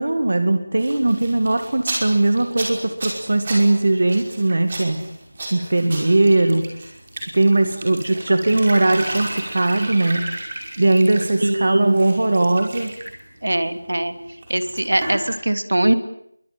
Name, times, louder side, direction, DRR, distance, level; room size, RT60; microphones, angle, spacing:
voice 1, 0.0-5.0 5.5-6.6 7.3-10.2 10.8-12.9, right 2 dB, 35° right, 8 dB, 2.2 m, -19 dB
sound 1, 0.8-11.5 11.8-13.2 14.4-15.3, right 2 dB, 20° right, 5.2 m, -32 dB
voice 2, 11.4-12.0 13.4-14.1 14.5-15.9, right 1 dB, 60° right, 10 dB, 3.0 m, -21 dB
29.0 x 23.5 x 8.7 m, 0.72 s
figure-of-eight pair, 180°, 0 cm